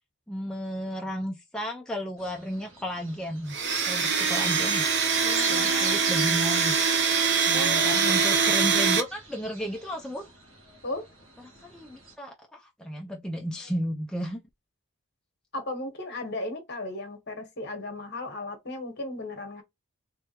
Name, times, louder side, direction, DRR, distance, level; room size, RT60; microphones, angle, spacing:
voice 1, 0.3-3.6 3.9-4.8 5.5-6.9 7.5-10.3 11.4-14.4, equal, 5° left, 0.4 m, -33 dB
sound 1, 2.2-12.1, right 4 dB, 75° right, 1.7 m, -42 dB
Domestic sounds home sounds, 3.5-9.0, right 5 dB, 50° right, 0.8 m, -23 dB
voice 2, 5.2-6.2 7.5-8.4 10.8-11.0 15.5-19.6, left 2 dB, 50° left, 1.2 m, -36 dB
3.5 x 3.3 x 2.9 m
head